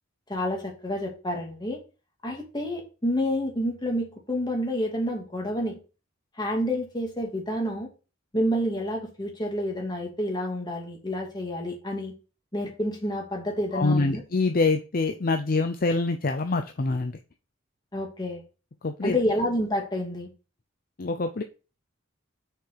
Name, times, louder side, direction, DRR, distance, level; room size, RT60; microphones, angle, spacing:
voice 1, 0.3-1.8 2.2-5.8 6.4-7.9 8.3-12.1 12.5-14.2 17.9-18.4 19.0-20.3, equal, 20° left, 1 dB, 2.4 m, -29 dB
voice 2, 13.7-17.2 18.8-19.2 21.0-21.4, left 3 dB, 45° left, 7 dB, 0.6 m, -25 dB
6.7 x 4.8 x 6.5 m, 0.32 s
head